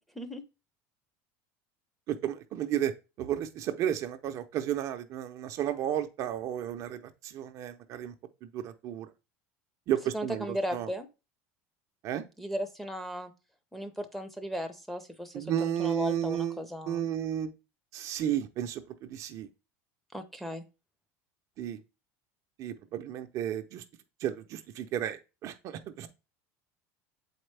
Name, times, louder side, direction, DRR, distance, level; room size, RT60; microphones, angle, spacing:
voice 1, 2.1-2.9 3.2-8.1 8.4-9.1 9.9-10.9 12.0-12.2 15.3-17.5 17.9-19.5 21.6-21.8 22.6-23.8 24.2-26.1, right 10 dB, 50° right, 0.6 m, -33 dB
voice 2, 10.1-11.1 12.4-13.3 13.7-17.1 20.1-20.6, equal, 5° left, 0.7 m, -36 dB
7.2 x 4.4 x 3.3 m
supercardioid pair, 130°, 7 cm